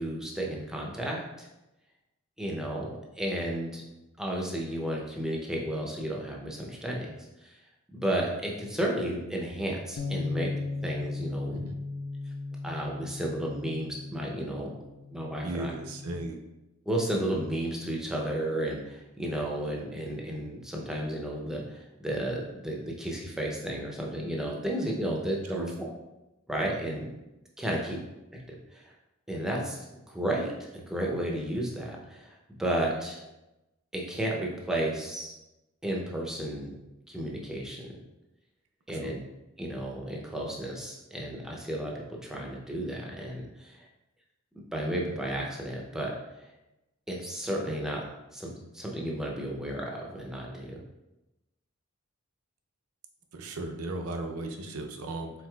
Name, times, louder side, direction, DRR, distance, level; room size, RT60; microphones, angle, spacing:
voice 1, 0.0-1.5 2.4-3.8 4.2-7.1 7.4-7.6 7.9-10.5 10.8-11.7 12.6-14.7 15.1-15.7 16.9-25.7 26.5-27.1 27.6-28.0 28.5-28.9 29.3-32.3 32.6-33.2 33.9-35.3 35.8-36.8 37.1-37.9 38.9-39.2 39.6-43.9 44.5-46.1 47.1-48.0 48.3-50.8, right 1 dB, ahead, -2 dB, 0.5 m, -33 dB
Bass guitar, 10.0-16.2, left 3 dB, 55° left, 0.4 m, -37 dB
voice 2, 15.4-16.4 25.5-25.7 39.0-39.2 53.3-55.3, right 2 dB, 90° right, 3 dB, 0.6 m, -36 dB
4.6 x 3.9 x 2.3 m, 0.98 s
head